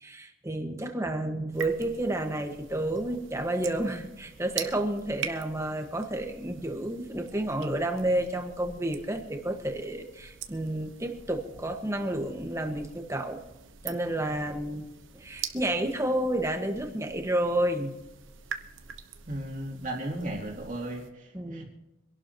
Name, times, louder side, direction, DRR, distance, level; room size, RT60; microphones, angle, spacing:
voice 1, 0.0-13.4 13.8-14.9 15.2-17.9 21.3-21.6, right 1 dB, 15° right, 4 dB, 1.4 m, -30 dB
sound 1, 1.5-21.1, right 7 dB, 75° right, 1.1 m, -44 dB
voice 2, 19.3-21.6, right 1 dB, 40° right, 0 dB, 2.8 m, -35 dB
25.0 x 11.5 x 3.0 m, 0.96 s
head